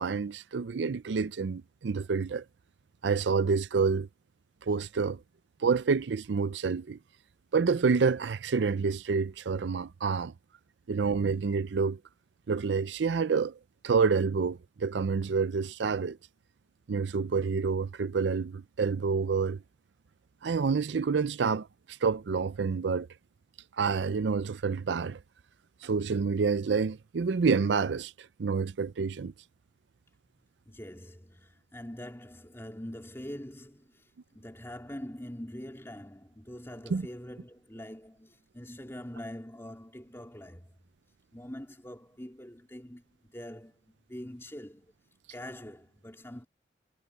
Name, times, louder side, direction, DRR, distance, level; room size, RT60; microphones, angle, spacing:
voice 1, 0.0-2.4 3.0-4.1 4.6-5.2 5.6-7.0 7.5-10.3 10.9-12.0 12.5-13.6 13.8-16.2 16.9-19.6 20.4-23.1 23.8-25.2 25.8-29.3 36.9-37.1, right 5 dB, 75° right, 0.5 m, -28 dB
voice 2, 30.7-40.7 41.3-44.9 45.3-46.4, left 1 dB, 15° left, 3.6 m, -44 dB
head